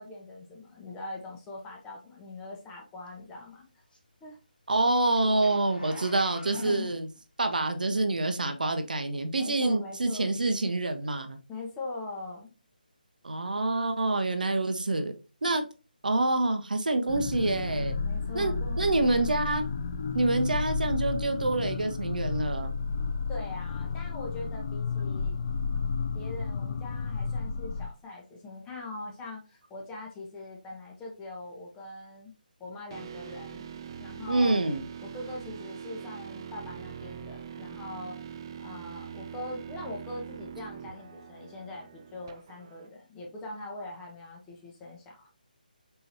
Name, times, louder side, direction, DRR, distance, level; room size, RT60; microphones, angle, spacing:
voice 1, 0.0-3.6 4.2-4.4 6.5-6.9 9.4-10.3 11.5-12.5 18.0-19.3 23.3-25.4 26.1-32.3 32.6-33.6 34.0-34.6 35.1-38.2 38.6-45.3, left 2 dB, 10° left, -1 dB, 0.8 m, -42 dB
Zipper (clothing), 3.1-8.0 8.6-8.7, left 1 dB, 75° left, 1.6 m, -48 dB
voice 2, 4.7-7.1 7.4-11.4 13.2-15.1 15.4-15.6 16.0-18.0 18.3-19.6 20.1-22.7 34.3-34.8, right 2 dB, 60° right, 7 dB, 0.7 m, -27 dB
sound 1, 17.1-27.9, left 4 dB, 40° left, 0.5 m, -32 dB
sound 2, 32.9-42.9, right 7 dB, 30° right, 0.3 m, -43 dB
4.4 x 3.7 x 2.8 m, 0.32 s
figure-of-eight pair, 150°, 5 cm